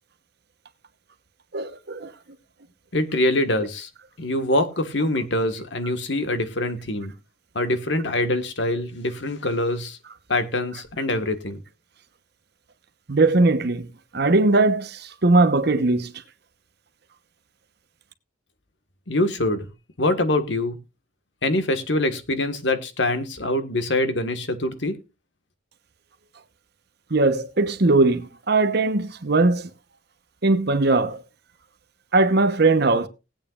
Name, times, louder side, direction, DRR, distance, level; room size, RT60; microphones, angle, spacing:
voice 1, 1.5-2.1 13.1-13.9 14.1-16.1 27.1-29.7 30.4-31.2 32.1-33.1, right 2 dB, 55° right, 1.0 m, -19 dB
voice 2, 2.9-3.9 4.2-7.1 7.5-10.0 10.3-11.6 19.1-19.7 20.0-20.8 21.4-25.0, left 1 dB, 65° left, 1.5 m, -24 dB
19.5 x 8.8 x 2.4 m
head